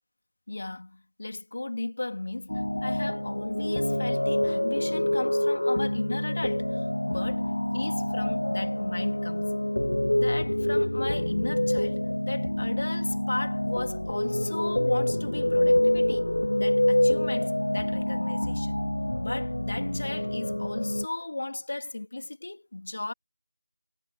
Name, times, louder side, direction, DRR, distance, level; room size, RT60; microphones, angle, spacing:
voice 1, 0.5-9.5 10.1-16.3 16.6-18.8 19.2-23.1, left 2 dB, 50° left, 3.3 m, -35 dB
sound 1, 2.5-21.1, left 1 dB, 80° left, 1.0 m, -26 dB
figure-of-eight pair, 170°, 0 cm